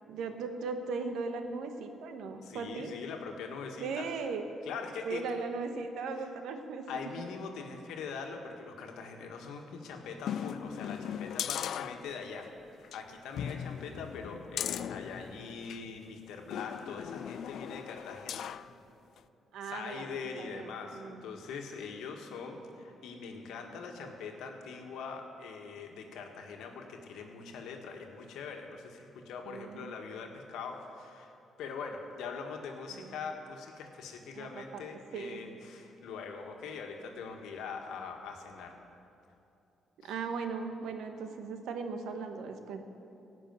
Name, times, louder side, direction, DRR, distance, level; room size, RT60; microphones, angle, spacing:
voice 1, 0.1-2.9 3.8-4.4 5.0-7.2 13.9-14.0 19.5-21.2 29.5-29.9 32.9-33.1 34.3-34.8 35.1-35.4 40.0-42.8, right 4 dB, 80° right, 6 dB, 1.1 m, -38 dB
voice 2, 2.4-4.1 4.6-5.2 6.2-6.3 6.9-12.5 12.9-18.5 19.6-38.8 40.0-40.1, left 5 dB, 85° left, 3 dB, 1.5 m, -42 dB
sound 1, 10.2-12.5 12.8-13.0 13.4-15.9 16.5-18.7 19.2-19.3, left 9 dB, 70° left, 0.3 m, -38 dB
16.5 x 6.1 x 9.3 m, 2.8 s
cardioid pair, 90°, 0 cm